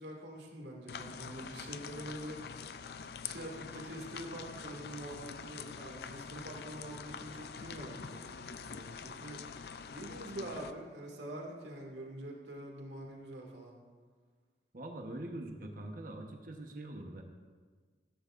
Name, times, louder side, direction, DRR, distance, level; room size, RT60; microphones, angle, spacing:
voice 1, 0.0-2.7 3.2-13.8, right 1 dB, 85° right, 0 dB, 2.0 m, -45 dB
sound 1, 0.9-10.7, left 6 dB, 60° left, 0.4 m, -45 dB
voice 2, 14.7-17.2, right 1 dB, 50° right, 2 dB, 1.0 m, -43 dB
14.0 x 13.5 x 2.5 m, 1.5 s
head